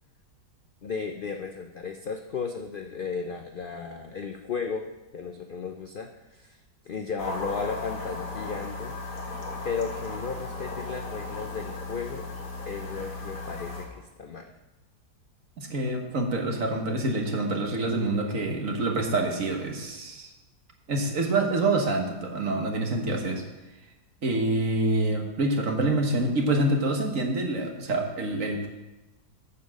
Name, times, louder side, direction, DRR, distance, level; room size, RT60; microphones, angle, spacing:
voice 1, 0.8-4.8 5.1-6.6 6.8-8.9 9.6-12.3 12.7-14.5, left 5 dB, 75° left, 5 dB, 0.4 m, -34 dB
sound 1, 7.2-13.8, left 2 dB, 55° left, 1.9 m, -36 dB
voice 2, 15.6-20.3 20.9-23.4 24.2-28.7, right 2 dB, 55° right, 2 dB, 1.7 m, -26 dB
8.6 x 7.1 x 6.4 m, 1.1 s
omnidirectional pair, 1.8 m